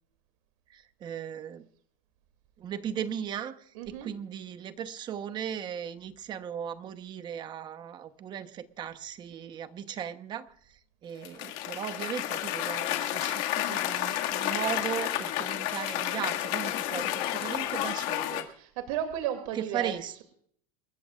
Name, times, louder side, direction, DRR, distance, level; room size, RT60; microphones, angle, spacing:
voice 1, 0.7-1.6 2.6-10.5 11.0-18.5 19.5-20.2, right 9 dB, 25° right, 10 dB, 1.0 m, -37 dB
voice 2, 3.7-4.1 18.5-20.2, right 10 dB, 70° right, 6 dB, 2.6 m, -34 dB
Cheering / Applause, 11.2-18.4, left 13 dB, 50° left, 2.0 m, -31 dB
28.5 x 14.0 x 2.4 m, 0.64 s
supercardioid pair, 170°, 18 cm